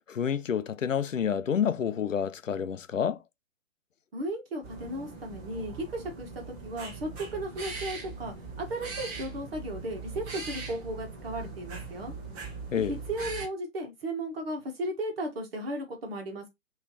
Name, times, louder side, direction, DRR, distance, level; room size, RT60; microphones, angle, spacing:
voice 1, 0.1-3.2 12.7-12.9, left 8 dB, 75° left, 0.6 m, -28 dB
voice 2, 4.1-12.1 12.7-16.5, right 1 dB, 50° right, 1.9 m, -35 dB
sound 1, 4.6-13.5, right 4 dB, 15° right, 0.9 m, -40 dB
5.1 x 3.2 x 3.1 m
figure-of-eight pair, 130°, 39 cm